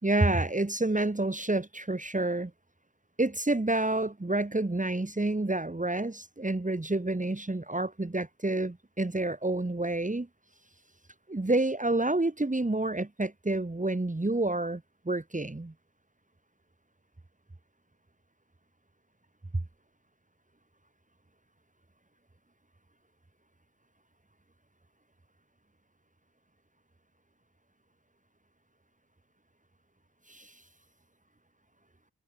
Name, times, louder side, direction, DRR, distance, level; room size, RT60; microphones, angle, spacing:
voice 1, 0.0-2.5 3.2-10.3 11.3-15.7 30.3-30.6, right 2 dB, 20° right, 3.3 m, -29 dB
cardioid pair, 45°, 34 cm